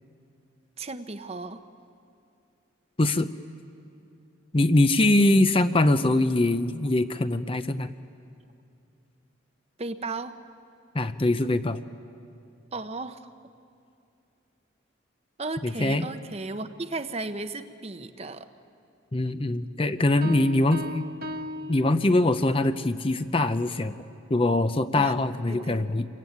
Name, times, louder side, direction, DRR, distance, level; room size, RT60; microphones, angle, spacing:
voice 1, 0.8-1.6 5.1-5.4 9.8-10.4 12.7-13.2 15.4-18.5 20.2-20.4 24.9-25.1 25.5-25.9, right 2 dB, 30° right, 9 dB, 0.8 m, -35 dB
voice 2, 4.5-7.9 10.9-11.8 15.6-16.1 19.1-21.0 21.7-24.0 24.3-26.1, left 2 dB, 25° left, 10 dB, 0.6 m, -23 dB
sound 1, 20.2-22.6, left 1 dB, 45° right, 1.3 m, -37 dB
27.5 x 23.0 x 9.4 m, 2.5 s
head